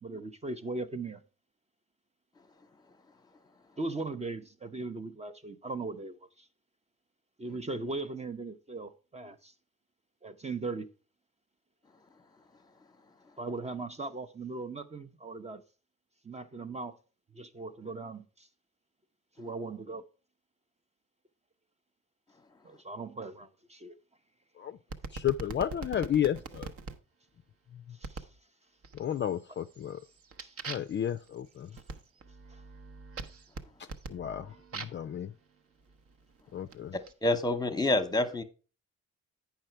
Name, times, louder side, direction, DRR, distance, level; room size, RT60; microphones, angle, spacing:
voice 1, 0.0-1.2 3.8-6.2 7.4-9.5 10.2-10.9 13.4-15.6 16.2-17.0 17.3-18.5 19.4-20.0 22.6-23.9 28.0-28.3 30.4-30.5, right 3 dB, 20° right, 0.6 m, -38 dB
sound 1, 24.9-27.0 28.0-28.4 28.8-29.3 29.7-35.1 35.9-37.1, right 4 dB, 50° right, 0.8 m, -43 dB
voice 2, 25.1-26.7 28.9-30.0 30.7-31.7 34.1-35.3 36.5-36.9, left 10 dB, 40° left, 0.4 m, -32 dB
voice 3, 36.9-38.4, left 2 dB, 15° left, 1.0 m, -28 dB
8.8 x 5.7 x 4.5 m
cardioid pair, 90°, 30 cm